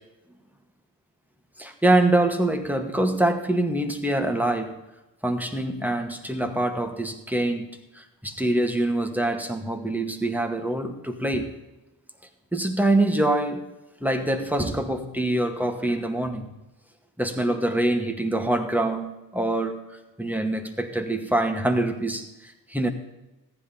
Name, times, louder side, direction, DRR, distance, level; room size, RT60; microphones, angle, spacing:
voice 1, 1.6-4.8 5.2-7.7 7.9-11.5 12.5-13.7 14.0-16.5 17.2-19.8 20.2-22.9, right 1 dB, 5° right, 4 dB, 1.9 m, -25 dB
14.5 x 10.5 x 3.9 m, 0.99 s
cardioid pair, 45°, 42 cm